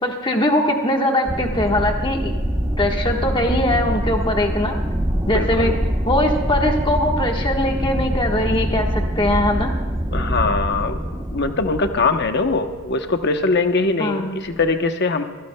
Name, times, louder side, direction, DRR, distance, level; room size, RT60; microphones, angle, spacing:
voice 1, 0.0-2.3 2.8-4.7 5.3-5.7 6.0-9.7 14.0-14.4, left 1 dB, 20° left, 2 dB, 1.3 m, -21 dB
sound 1, 1.3-13.3 14.5-14.7, equal, 10° right, 0.9 m, -24 dB
voice 2, 5.3-5.8 10.1-11.0 11.3-15.2, left 3 dB, 50° left, 7 dB, 0.9 m, -21 dB
23.5 x 17.0 x 2.2 m, 1.5 s
head